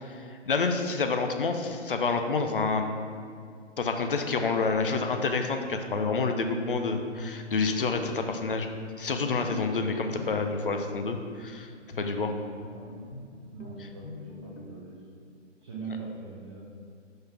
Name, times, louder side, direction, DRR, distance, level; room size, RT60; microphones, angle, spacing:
voice 1, 0.0-3.2 3.8-8.7 9.0-11.7 12.0-12.3, left 4 dB, 50° left, 5 dB, 0.6 m, -28 dB
Guitar, 7.2-14.9, left 2 dB, 80° left, 0.9 m, -46 dB
voice 2, 13.5-15.0 15.6-16.6, right 4 dB, 25° right, -7 dB, 0.6 m, -41 dB
5.3 x 3.9 x 6.0 m, 2.3 s
figure-of-eight pair, 135°, 36 cm